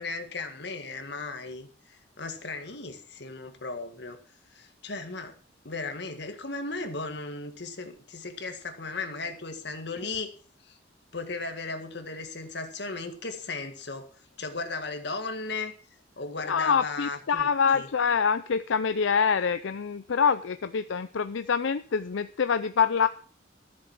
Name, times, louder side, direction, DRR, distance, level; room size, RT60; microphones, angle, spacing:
voice 1, 0.0-4.2 4.5-5.4 5.6-10.3 10.6-10.8 11.1-14.1 14.4-15.7 16.2-17.9, left 3 dB, 60° left, 6 dB, 1.8 m, -36 dB
voice 2, 16.5-23.1, left 6 dB, 80° left, 11 dB, 0.5 m, -25 dB
13.5 x 7.4 x 5.9 m, 0.42 s
head